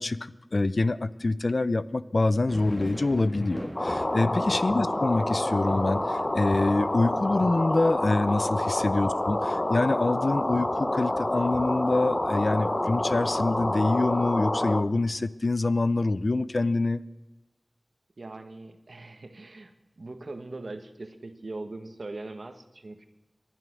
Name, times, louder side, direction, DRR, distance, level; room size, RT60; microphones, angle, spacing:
voice 1, 0.0-17.0, left 2 dB, 65° left, 16 dB, 0.6 m, -26 dB
sound 1, 2.5-15.2, equal, 10° right, 1.7 m, -45 dB
sound 2, 3.8-14.8, left 1 dB, 35° left, 1.0 m, -28 dB
voice 2, 4.7-5.1 9.1-9.3 18.2-23.1, right 2 dB, 75° right, 8 dB, 1.6 m, -41 dB
19.5 x 11.5 x 6.3 m, 1.0 s
wide cardioid pair, 55°, 0 cm